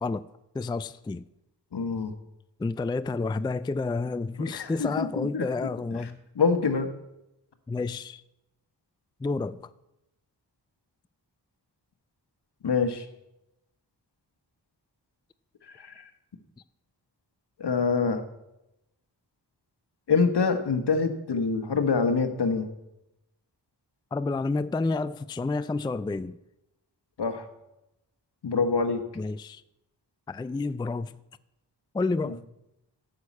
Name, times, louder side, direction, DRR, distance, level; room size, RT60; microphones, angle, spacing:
voice 1, 0.5-1.2 2.6-6.2 7.7-8.2 9.2-9.6 24.1-26.3 29.2-29.6 30.3-31.2 31.9-32.4, left 3 dB, 10° left, 0.3 m, -30 dB
voice 2, 1.7-2.1 4.4-6.9 12.6-13.0 15.7-16.1 17.6-18.2 20.1-22.7 27.2-27.5 28.4-29.0 32.2-32.4, left 5 dB, 70° left, 1.3 m, -26 dB
9.6 x 6.5 x 8.4 m
cardioid pair, 50°, 42 cm